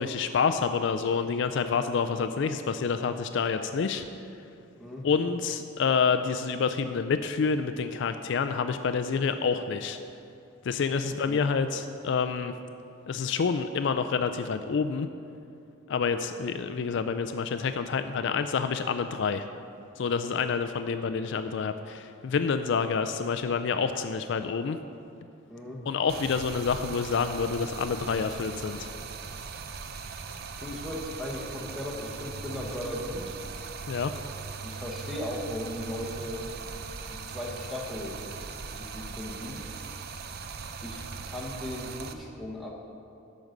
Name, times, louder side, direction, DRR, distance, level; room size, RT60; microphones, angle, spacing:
voice 1, 0.0-4.0 5.0-10.0 10.6-12.5 13.1-15.1 15.9-19.5 20.0-24.8 25.9-28.9 33.9-34.1, left 5 dB, 60° left, 9 dB, 0.4 m, -28 dB
voice 2, 4.8-5.1 11.2-11.5 25.5-25.8 30.6-33.4 34.6-36.5 37.1-38.2 38.7-39.6 40.8-42.7, left 1 dB, ahead, -3 dB, 1.2 m, -37 dB
Stream, 26.1-42.1, right 5 dB, 50° right, 0.5 m, -40 dB
11.0 x 5.2 x 6.5 m, 2.6 s
head